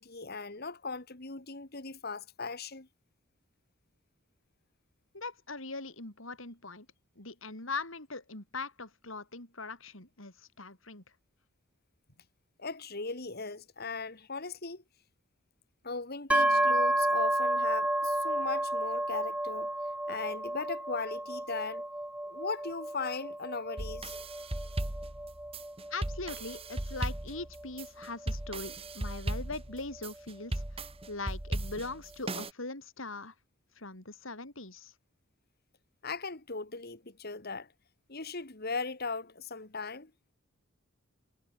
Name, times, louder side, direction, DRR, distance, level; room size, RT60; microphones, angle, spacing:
voice 1, 0.0-2.9 12.6-14.8 15.8-19.7 20.1-21.8 22.3-24.2 36.0-37.7 38.1-40.1, left 4 dB, 50° left, 2.2 m, -38 dB
voice 2, 5.1-6.9 7.2-11.0 25.9-33.3 33.8-34.9, left 3 dB, 70° left, 5.4 m, -41 dB
sound 1, 16.3-30.0, right 1 dB, 5° right, 1.9 m, -32 dB
sound 2, 23.8-32.5, right 1 dB, 30° right, 1.6 m, -37 dB
head